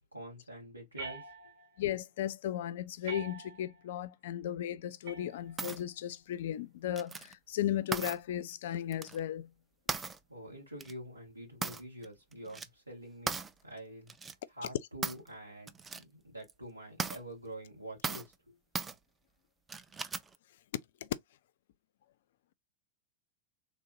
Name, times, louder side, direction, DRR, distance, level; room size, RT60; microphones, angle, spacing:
voice 1, 0.1-1.2 10.3-14.1 14.5-18.5, right 1 dB, 85° right, 2.0 m, -47 dB
sound 1, 1.0-1.8 3.0-3.8 5.0-5.9, right 3 dB, 55° right, 1.5 m, -46 dB
voice 2, 1.8-9.5 21.0-21.1, left 11 dB, 55° left, 0.3 m, -36 dB
sound 2, 5.6-5.8 7.0-7.3 7.9-8.2 8.9-9.2 9.9-10.2 10.8-10.9 11.6-12.0 12.3-12.7 13.3-13.5 14.1-14.3 15.0-15.3 15.7-16.0 16.4-16.5 17.0-17.2 18.0-18.3 18.7-18.9 19.7-20.3, right 5 dB, 15° right, 0.4 m, -37 dB
3.3 x 2.5 x 2.4 m
figure-of-eight pair, 90°, 0 cm